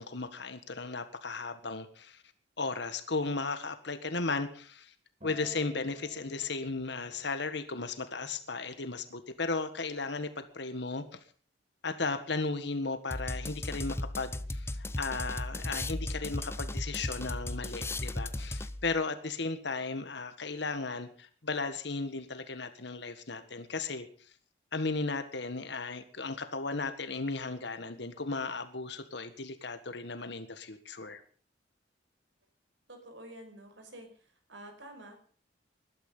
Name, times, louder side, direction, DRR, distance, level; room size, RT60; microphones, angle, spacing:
voice 1, 0.0-2.2 2.6-4.9 5.2-11.0 11.8-24.1 24.7-31.2, left 3 dB, 65° left, 10 dB, 1.6 m, -35 dB
Acoustic guitar, 5.2-9.5 10.3-10.4, left 6 dB, 35° right, 5.0 m, -54 dB
sound 1, 13.1-19.0, left 1 dB, 15° left, 0.7 m, -36 dB
voice 2, 32.9-35.2, right 1 dB, 70° right, 5 dB, 5.3 m, -49 dB
20.0 x 12.0 x 5.5 m, 0.43 s
head